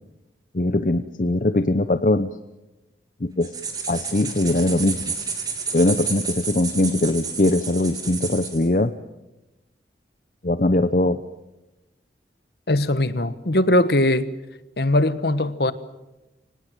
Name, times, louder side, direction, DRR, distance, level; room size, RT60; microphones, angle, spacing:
voice 1, 0.5-2.3 3.2-3.5 3.9-5.0 5.7-8.9 10.4-11.2, left 2 dB, 45° left, 0.8 m, -21 dB
sound 1, 3.4-8.7, right 5 dB, 20° right, 3.3 m, -31 dB
voice 2, 12.7-14.3 14.8-15.7, left 1 dB, 60° left, 1.3 m, -20 dB
24.5 x 18.5 x 9.1 m
head